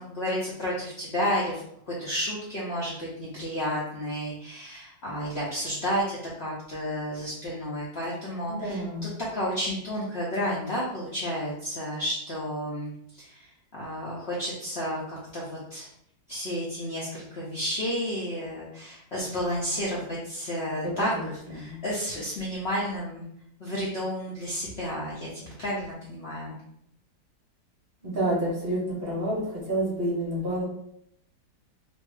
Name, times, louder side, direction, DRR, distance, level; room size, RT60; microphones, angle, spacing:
voice 1, 0.0-1.6 1.9-8.8 9.3-15.9 16.3-23.3 23.6-26.6, equal, 85° left, -6 dB, 0.5 m, -31 dB
voice 2, 8.5-9.1 20.8-21.8 28.0-30.6, right 1 dB, 50° right, -5 dB, 0.7 m, -29 dB
2.6 x 2.6 x 3.2 m, 0.73 s
omnidirectional pair, 2.0 m